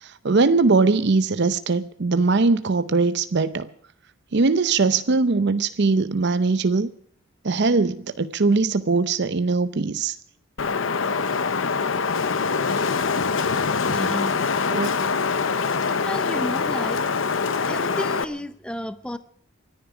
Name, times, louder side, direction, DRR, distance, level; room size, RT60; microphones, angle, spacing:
voice 1, 0.0-3.7 4.3-6.9 7.4-10.2 14.7-14.9, right 3 dB, 55° right, 0.6 m, -21 dB
Wind, 10.6-18.2, left 5 dB, 70° left, 0.8 m, -24 dB
voice 2, 13.9-14.4 16.0-17.0 17.6-19.2, left 1 dB, 5° left, 0.6 m, -32 dB
23.5 x 10.5 x 4.9 m
head